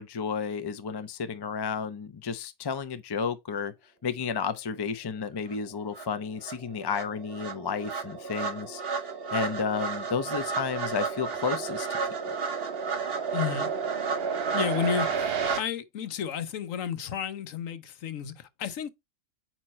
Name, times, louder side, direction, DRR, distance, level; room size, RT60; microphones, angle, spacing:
voice 1, 0.0-3.7 4.0-8.8 9.3-11.9 12.3-12.4, left 6 dB, 40° left, 0.3 m, -32 dB
sound 1, 5.5-5.6 6.0-15.6, right 5 dB, 45° right, 1.1 m, -31 dB
voice 2, 13.3-13.7 14.5-15.3 15.6-18.9, left 8 dB, 70° left, 1.1 m, -32 dB
9.0 x 3.0 x 4.2 m
omnidirectional pair, 1.5 m